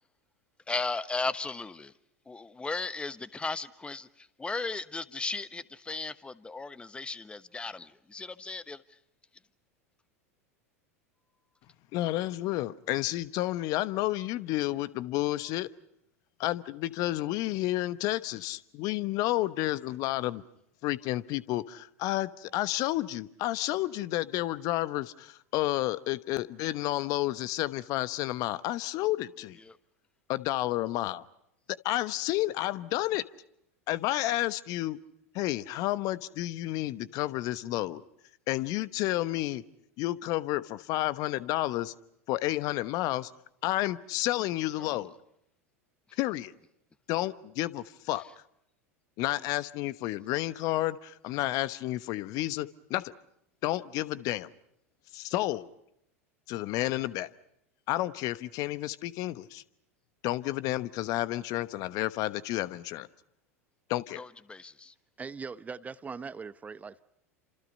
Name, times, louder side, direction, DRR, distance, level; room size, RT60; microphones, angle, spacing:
voice 1, 0.7-1.9 2.3-9.0 29.6-29.8 44.8-45.0 64.2-64.9, left 3 dB, 15° left, 1.1 m, -36 dB
voice 2, 11.9-15.7 16.4-20.4 20.8-29.6 30.3-31.2 31.8-33.2 33.9-35.0 35.3-38.0 38.5-39.6 40.0-41.9 42.3-43.3 43.6-45.1 46.2-46.5 47.1-48.2 49.2-53.1 53.6-54.5 55.1-55.7 56.5-57.3 57.9-59.6 60.2-63.1 63.9-64.2, left 16 dB, 50° left, 1.1 m, -31 dB
voice 3, 65.2-67.0, right 5 dB, 20° right, 0.9 m, -40 dB
29.5 x 27.0 x 5.4 m
figure-of-eight pair, 85°, 8 cm